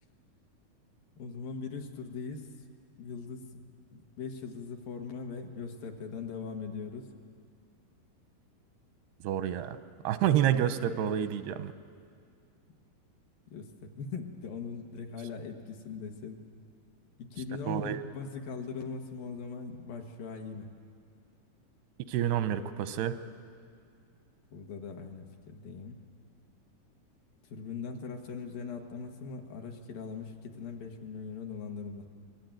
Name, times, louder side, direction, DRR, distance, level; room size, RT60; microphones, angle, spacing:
voice 1, 1.2-2.5 3.0-3.5 3.9-7.1 13.5-16.4 17.2-20.7 24.5-26.0 27.5-32.1, left 5 dB, 65° left, 3 dB, 3.1 m, -40 dB
voice 2, 9.2-9.8 10.0-11.7 17.7-18.0 22.1-23.2, right 10 dB, 90° right, 11 dB, 2.9 m, -28 dB
24.0 x 22.0 x 9.1 m, 2.2 s
omnidirectional pair, 4.6 m